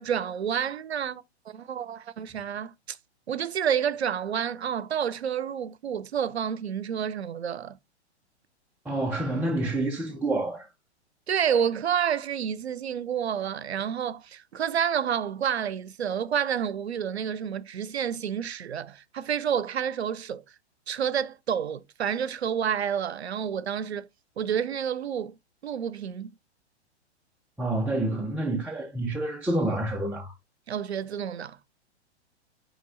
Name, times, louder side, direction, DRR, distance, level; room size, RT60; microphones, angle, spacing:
voice 1, 0.0-3.0 3.3-7.8 11.3-20.4 20.9-24.1 24.4-25.4 25.6-26.3 30.7-31.6, right 8 dB, 65° right, 0.8 m, -29 dB
voice 2, 8.8-10.7 27.6-30.4, right 2 dB, 5° right, 0.7 m, -28 dB
10.5 x 3.6 x 2.5 m
figure-of-eight pair, 110°, 34 cm